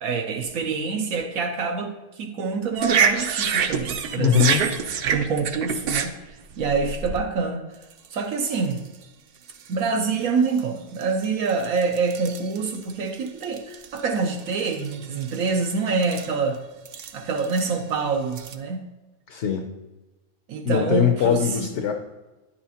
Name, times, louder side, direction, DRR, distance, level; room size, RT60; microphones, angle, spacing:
voice 1, 0.0-4.5 5.0-6.1 6.6-7.7 8.1-8.8 9.7-16.6 17.1-18.8 20.5-21.7, right 4 dB, 85° right, 3 dB, 1.2 m, -26 dB
sound 1, 2.7-7.2 7.9-8.1 8.4-8.8 9.5-9.7 10.6-10.7 11.0-14.0 14.3-15.7 16.0-16.3 16.8-17.7 18.3-18.5, right 6 dB, 65° right, 0.6 m, -27 dB
voice 2, 4.2-4.6 19.3-19.6 20.6-21.9, left 9 dB, 65° left, 4 dB, 0.9 m, -21 dB
9.7 x 5.7 x 2.8 m, 1.1 s
omnidirectional pair, 1.4 m